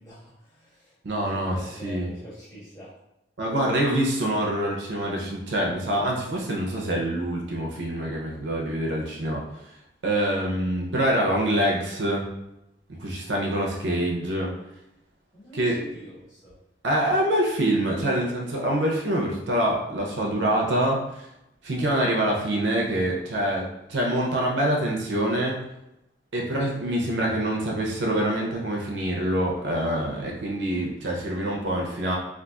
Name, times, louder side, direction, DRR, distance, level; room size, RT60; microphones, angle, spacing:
voice 1, 0.0-1.0 1.2-2.9 15.3-16.6, equal, 20° left, -10 dB, 1.5 m, -45 dB
voice 2, 1.0-1.6 1.8-2.1 3.4-9.4 10.0-12.2 13.0-14.5 15.5-15.8 16.8-21.2 21.6-25.6 26.3-32.2, right 1 dB, 85° right, -2 dB, 0.6 m, -25 dB
3.8 x 2.4 x 2.3 m, 0.88 s
head